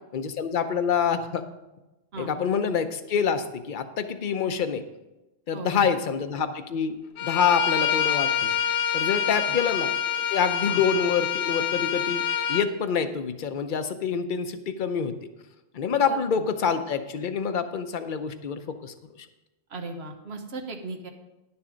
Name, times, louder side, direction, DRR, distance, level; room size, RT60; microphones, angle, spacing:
voice 1, 0.1-1.4 2.2-4.8 5.5-8.5 8.9-12.2 12.5-15.2 15.7-18.9, left 6 dB, 55° left, 9 dB, 0.8 m, -26 dB
voice 2, 5.5-5.9 9.2-9.6 10.6-10.8 16.0-16.2 19.7-21.1, right 2 dB, 75° right, 4 dB, 1.4 m, -37 dB
Bowed string instrument, 7.2-12.7, left 8 dB, 85° left, 1.0 m, -26 dB
10.5 x 7.1 x 5.0 m, 1.0 s
omnidirectional pair, 1.1 m